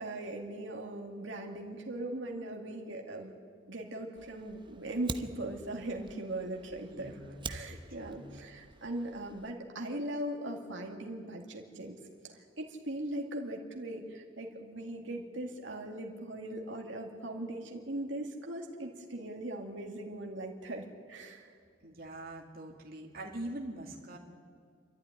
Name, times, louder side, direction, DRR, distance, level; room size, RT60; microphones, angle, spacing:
voice 1, 0.0-3.3 3.7-7.2 7.5-12.0 12.2-21.5, right 1 dB, 80° right, 1 dB, 2.3 m, -39 dB
Fire, 4.1-9.5, right 3 dB, 25° right, 0.9 m, -46 dB
voice 2, 6.8-8.5 21.8-24.2, right 1 dB, 55° right, 1 dB, 2.4 m, -44 dB
29.0 x 12.5 x 9.8 m, 2.3 s
head